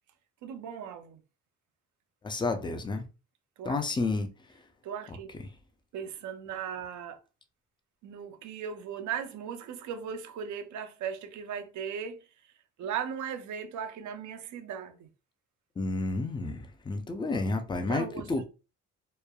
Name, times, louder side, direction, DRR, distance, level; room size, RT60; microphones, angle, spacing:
voice 1, 0.4-1.2 3.6-3.8 4.8-5.3 5.9-7.2 8.0-12.2 12.8-15.1 17.9-18.4, right 7 dB, 75° right, 0.5 m, -37 dB
voice 2, 2.2-3.0 3.6-4.3 15.8-18.4, left 3 dB, 15° left, 0.4 m, -30 dB
3.0 x 2.2 x 2.2 m
cardioid pair, 90°, 30 cm